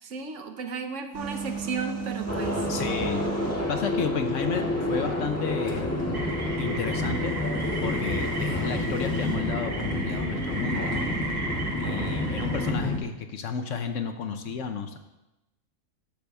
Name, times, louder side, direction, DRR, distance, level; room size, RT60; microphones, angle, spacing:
voice 1, 0.0-2.7, right 4 dB, 65° right, 7 dB, 1.1 m, -34 dB
sound 1, 1.1-3.7 5.7-9.4, right 6 dB, 80° right, 1.8 m, -38 dB
sound 2, 2.3-13.0, left 1 dB, 10° left, 1.1 m, -29 dB
voice 2, 2.7-3.2 3.7-5.9 6.6-7.4 7.8-11.1 11.8-15.0, left 6 dB, 65° left, 6 dB, 1.1 m, -32 dB
sound 3, 6.1-12.7, right 2 dB, 35° right, 0.8 m, -36 dB
12.0 x 6.7 x 3.5 m, 0.96 s
omnidirectional pair, 1.5 m